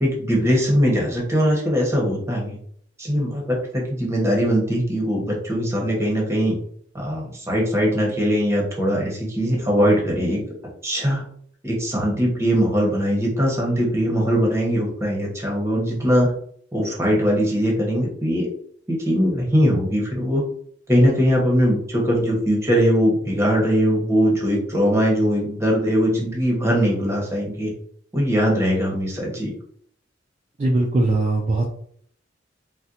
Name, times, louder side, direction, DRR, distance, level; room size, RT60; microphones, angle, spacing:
voice 1, 0.0-2.6 3.0-6.6 6.9-10.4 10.8-11.2 11.6-16.3 16.7-18.5 18.9-20.4 20.9-27.7 28.1-29.5, equal, 15° right, -2 dB, 0.9 m, -21 dB
voice 2, 30.6-31.7, right 2 dB, 35° right, -2 dB, 0.4 m, -20 dB
4.1 x 2.1 x 2.4 m, 0.63 s
head